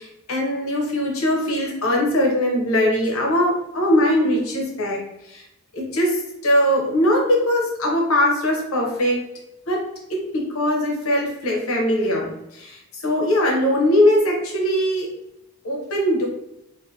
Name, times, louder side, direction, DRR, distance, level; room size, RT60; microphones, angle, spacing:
voice 1, 0.0-5.4 5.7-9.3 9.7-15.2 15.6-16.3, left 1 dB, 75° left, 0 dB, 0.8 m, -21 dB
2.6 x 2.6 x 2.7 m, 0.86 s
head